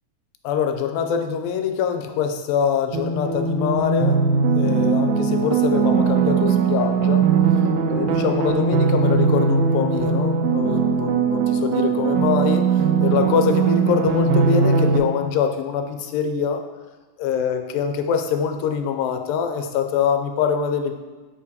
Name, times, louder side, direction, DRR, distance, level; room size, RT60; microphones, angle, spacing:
voice 1, 0.4-4.2 4.5-7.2 7.9-16.6 17.2-20.9, left 7 dB, 85° left, 6 dB, 2.3 m, -24 dB
sound 1, 2.9-15.0, right 5 dB, 85° right, 1.6 m, -20 dB
7.4 x 5.0 x 2.7 m, 1.3 s
omnidirectional pair, 4.0 m